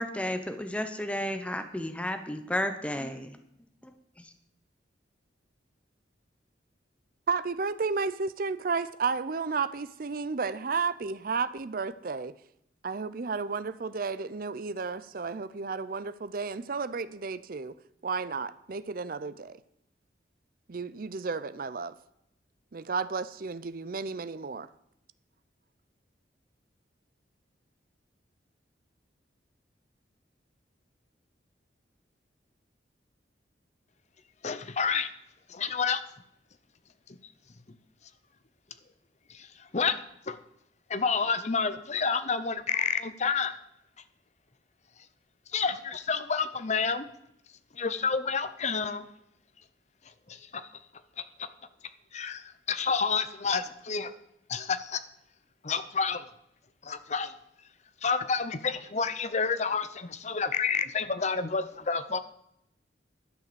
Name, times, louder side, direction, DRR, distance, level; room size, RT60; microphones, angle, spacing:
voice 1, 0.0-3.4 4.2-4.3, left 1 dB, 5° left, 0.9 m, -32 dB
voice 2, 7.3-12.3 12.8-17.8 18.0-19.6 20.7-22.0 22.7-24.7, right 4 dB, 50° right, 0.5 m, -32 dB
voice 3, 34.4-35.1 35.5-36.0 39.3-39.5 39.7-40.4 40.9-43.6 45.5-47.1 47.7-49.0 50.3-50.7 51.4-51.5 52.1-54.1 54.5-55.0 55.6-56.3 56.8-57.3 58.0-62.2, left 5 dB, 40° left, 0.7 m, -29 dB
11.5 x 6.6 x 6.9 m
head